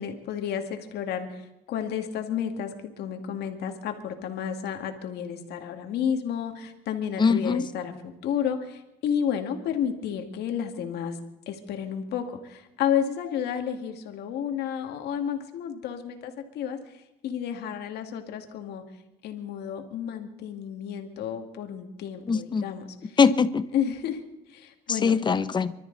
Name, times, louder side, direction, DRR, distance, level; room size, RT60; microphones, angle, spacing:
voice 1, 0.0-7.9 8.2-11.2 11.5-18.8 19.2-23.2 23.7-24.2 24.5-25.2, left 8 dB, 75° left, 5 dB, 2.2 m, -31 dB
voice 2, 7.2-7.7 22.3-22.7 23.2-23.6 24.9-25.7, left 5 dB, 25° left, 13 dB, 0.9 m, -22 dB
25.0 x 13.0 x 4.0 m, 0.90 s
cardioid pair, 110°, 17 cm